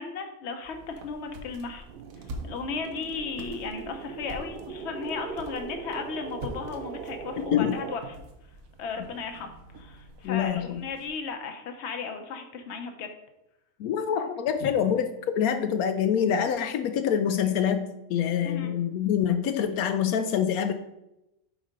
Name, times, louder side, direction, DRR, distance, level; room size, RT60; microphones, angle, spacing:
voice 1, 0.0-1.9 2.4-8.2 8.8-13.1 14.6-14.7 18.4-18.7, left 5 dB, 55° left, 5 dB, 1.0 m, -35 dB
sound 1, 0.6-11.1, right 1 dB, 70° right, 1.3 m, -45 dB
sound 2, 1.9-8.0, right 6 dB, 90° right, 0.4 m, -40 dB
voice 2, 7.4-7.7 10.2-10.8 13.8-20.7, left 8 dB, 80° left, 8 dB, 1.0 m, -26 dB
7.3 x 4.1 x 5.2 m, 0.90 s
omnidirectional pair, 1.5 m